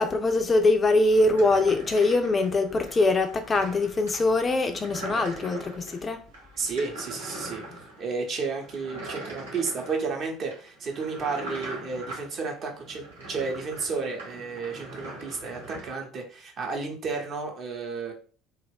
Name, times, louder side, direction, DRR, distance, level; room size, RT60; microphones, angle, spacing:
voice 1, 0.0-6.2, left 2 dB, 25° left, 0.4 m, -23 dB
Rolling chair, 1.1-15.9, right 2 dB, 75° right, 0.8 m, -42 dB
voice 2, 6.6-7.6 8.0-18.1, right 4 dB, 45° right, 0.8 m, -32 dB
2.4 x 2.3 x 3.4 m
figure-of-eight pair, 60°, 0 cm